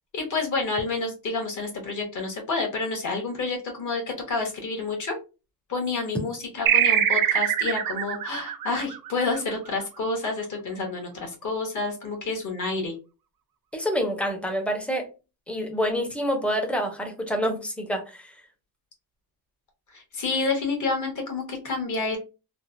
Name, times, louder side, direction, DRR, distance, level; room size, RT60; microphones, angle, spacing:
voice 1, 0.1-5.2 5.7-12.9 19.9-22.2, left 3 dB, 50° left, 2 dB, 1.2 m, -29 dB
sound 1, 6.7-9.7, right 10 dB, 60° right, 0.5 m, -23 dB
voice 2, 13.7-15.1 15.5-18.3, equal, 5° left, 2 dB, 0.5 m, -27 dB
3.2 x 2.1 x 2.5 m, 0.30 s
wide cardioid pair, 160°, 39 cm